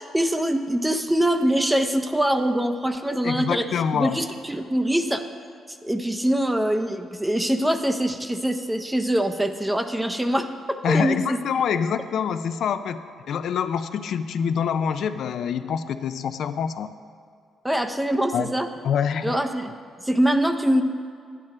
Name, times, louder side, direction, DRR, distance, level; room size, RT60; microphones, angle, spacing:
voice 1, 0.0-5.2 5.7-11.4 17.6-18.7 19.2-19.7 20.0-20.8, right 1 dB, 10° right, 8 dB, 0.5 m, -24 dB
voice 2, 3.2-4.2 10.8-13.0 13.3-16.9 18.3-18.5 18.8-19.4, left 7 dB, 70° left, 10 dB, 0.3 m, -25 dB
10.5 x 8.9 x 3.2 m, 2.3 s
cardioid pair, 90°, 0 cm